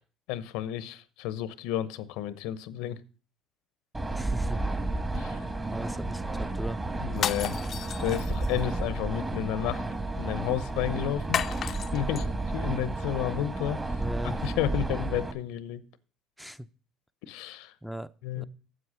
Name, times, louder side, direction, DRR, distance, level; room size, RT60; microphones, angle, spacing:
voice 1, 0.3-3.0 5.1-5.4 7.0-7.6 8.0-9.8 10.2-11.4 11.9-13.8 14.4-15.8 17.3-17.7 18.2-18.4, left 11 dB, 85° left, 0.8 m, -31 dB
sound 1, 3.9-15.3, right 2 dB, 15° right, 1.4 m, -32 dB
voice 2, 4.1-4.6 5.7-6.8 13.9-14.5 16.4-16.7 17.8-18.4, equal, ahead, 0.6 m, -38 dB
sound 2, 7.1-8.6 11.3-12.2, left 9 dB, 50° left, 0.5 m, -32 dB
7.9 x 7.7 x 6.3 m
supercardioid pair, 100°, 0 cm